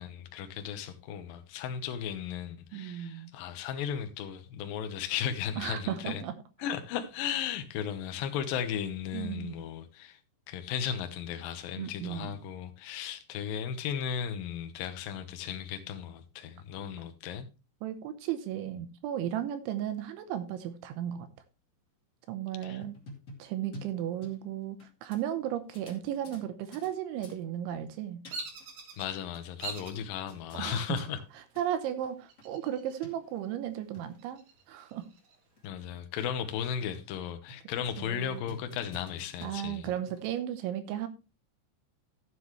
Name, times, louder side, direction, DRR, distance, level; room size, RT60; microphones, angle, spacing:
voice 1, 0.0-6.2 6.6-10.2 10.5-17.5 22.6-22.8 29.0-31.2 35.6-39.9, left 8 dB, 85° left, 2.0 m, -35 dB
voice 2, 2.7-3.3 5.6-6.3 9.1-9.6 11.8-12.3 17.8-21.3 22.3-23.0 23.4-28.2 30.6-31.0 31.6-34.4 34.7-35.1 38.0-38.4 39.4-41.1, right 11 dB, 80° right, 3.2 m, -35 dB
sound 1, 22.8-24.8 25.1-25.2 25.7-26.9 27.2-27.4 28.0-28.7 28.9-30.0 30.3-30.6 31.3-31.4 31.5-31.7 32.0-32.1 32.4-32.5 33.0-33.1 33.7-34.0 34.5-34.6 35.0-35.1 35.6-35.7 36.0-36.1 36.5-37.2 37.5-37.7 38.2-40.4, equal, 30° left, 1.6 m, -49 dB
Bird vocalization bird call bird song, 28.3-29.1 29.6-30.0 30.6-31.1 32.3-33.1 33.4-33.5 34.0-35.4, right 4 dB, 65° right, 3.9 m, -42 dB
14.0 x 7.9 x 3.2 m
omnidirectional pair, 5.6 m